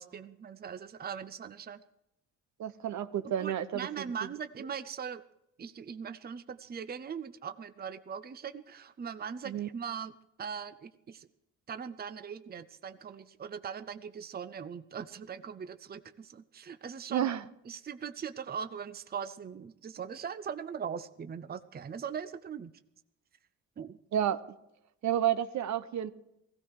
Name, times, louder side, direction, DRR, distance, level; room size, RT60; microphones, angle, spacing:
voice 1, 0.0-1.8 3.2-5.2 5.6-10.1 10.4-11.3 11.7-17.3 17.7-22.7 23.8-24.0, right 7 dB, 30° right, 12 dB, 0.7 m, -40 dB
voice 2, 2.6-4.0 9.4-9.7 17.1-17.4 24.1-24.4 25.0-26.1, right 10 dB, 70° right, 12 dB, 1.0 m, -30 dB
16.5 x 16.5 x 4.8 m, 0.85 s
cardioid pair, 90°, 30 cm